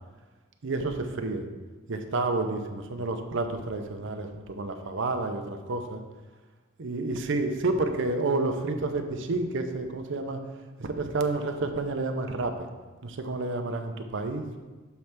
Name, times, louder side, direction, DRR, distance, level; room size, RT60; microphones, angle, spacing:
voice 1, 0.6-1.5 1.9-6.0 6.8-10.4 10.8-12.7 13.0-14.5, right 3 dB, 60° right, 6 dB, 0.6 m, -30 dB
6.9 x 3.2 x 5.9 m, 1.3 s
head